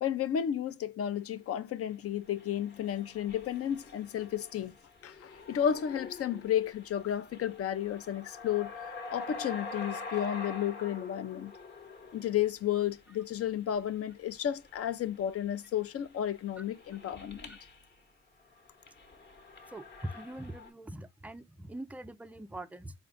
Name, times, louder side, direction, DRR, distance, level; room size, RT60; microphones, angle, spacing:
voice 1, 0.0-4.8 5.0-11.5 12.1-17.6, left 10 dB, 50° left, 0.5 m, -32 dB
sound 1, 2.3-17.8 18.4-20.7, left 3 dB, 35° left, 1.0 m, -46 dB
voice 2, 19.7-22.9, right 1 dB, 5° right, 0.3 m, -43 dB
4.2 x 2.3 x 3.7 m
cardioid pair, 90°, 30 cm